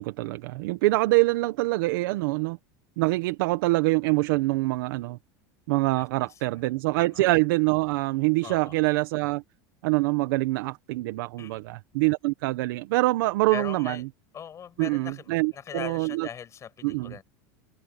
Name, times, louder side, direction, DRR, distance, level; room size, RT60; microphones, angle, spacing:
voice 1, 0.0-2.6 3.0-5.2 5.7-9.4 9.8-14.1 14.8-16.3 16.8-17.2, right 21 dB, 70° right, 1.3 m, -25 dB
voice 2, 5.9-6.7 6.9-7.2 8.4-8.8 11.4-11.8 13.5-14.0 14.3-17.2, left 8 dB, 25° left, 6.4 m, -41 dB
supercardioid pair, 150°, 12 cm